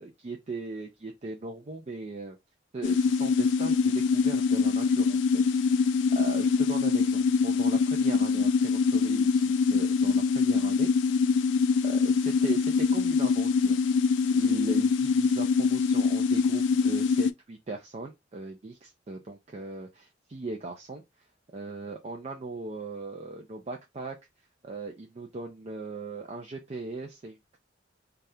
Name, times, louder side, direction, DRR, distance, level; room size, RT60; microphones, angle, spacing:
voice 1, 0.0-2.4 2.7-5.4 5.7-10.9 11.8-14.1 14.3-21.0 21.5-24.2 24.6-27.6, right 3 dB, 35° right, 0.4 m, -39 dB
sound 1, 2.8-17.3, left 5 dB, 85° left, 0.3 m, -24 dB
3.4 x 2.3 x 2.7 m
head